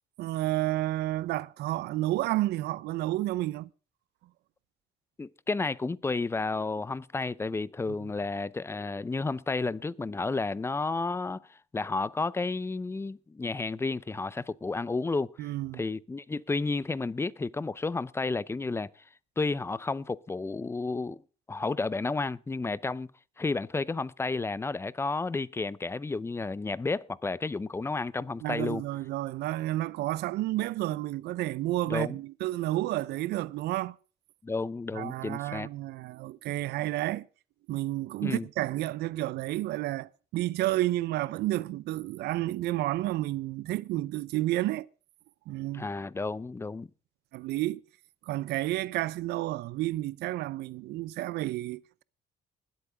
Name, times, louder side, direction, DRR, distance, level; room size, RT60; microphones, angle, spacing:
voice 1, 0.2-3.7 15.4-15.8 28.4-34.0 34.9-37.3 37.7-44.9 45.5-45.9 47.3-47.8 48.3-52.0, right 16 dB, 80° right, 0.7 m, -31 dB
voice 2, 5.2-15.3 15.7-18.9 19.4-21.2 21.5-23.1 23.4-28.8 31.9-32.2 34.4-35.7 38.2-38.5 45.7-46.9, left 3 dB, 15° left, 0.6 m, -31 dB
21.0 x 8.4 x 3.5 m
cardioid pair, 110°, 17 cm